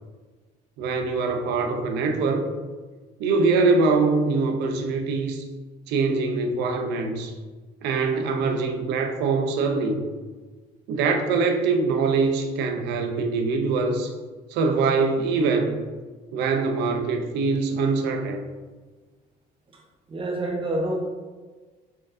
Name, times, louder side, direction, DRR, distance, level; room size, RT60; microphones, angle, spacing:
voice 1, 0.8-2.5 3.2-5.4 5.9-7.3 7.8-10.0 10.9-14.1 14.5-15.8 16.3-18.4, right 4 dB, 85° right, 4 dB, 0.6 m, -23 dB
voice 2, 20.1-21.1, right 1 dB, 30° right, 0 dB, 0.9 m, -27 dB
4.4 x 3.6 x 2.6 m, 1.4 s
cardioid pair, 110°, 17 cm